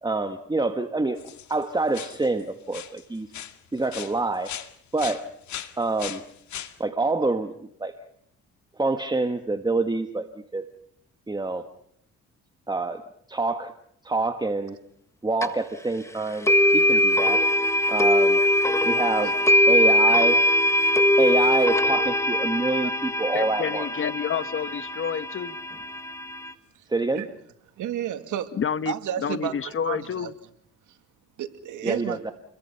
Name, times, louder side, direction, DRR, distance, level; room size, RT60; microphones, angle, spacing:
voice 1, 0.0-3.3 3.7-4.5 4.9-5.3 5.8-6.2 6.8-7.5 7.8-7.9 8.8-10.3 10.5-10.7 11.3-11.7 12.7-13.0 13.3-13.7 14.0-14.8 15.2-16.5 16.7-17.4 17.9-18.4 18.8-19.4 19.7-20.4 21.2-23.9 26.9-27.2 31.8-32.3, right 3 dB, 15° right, 1.5 m, -26 dB
sound 1, 1.2-1.6 1.9-2.4 2.7-3.0 3.3-4.7 5.0-6.7, left 10 dB, 70° left, 2.1 m, -38 dB
sound 2, 15.4-15.5 16.5-26.5, left 1 dB, 10° left, 1.5 m, -21 dB
voice 2, 23.3-25.6 28.5-30.3, left 7 dB, 45° left, 1.3 m, -29 dB
voice 3, 27.8-28.5 28.9-30.3 31.4-32.3, right 11 dB, 80° right, 2.3 m, -31 dB
30.0 x 22.5 x 5.7 m
cardioid pair, 90°, 30 cm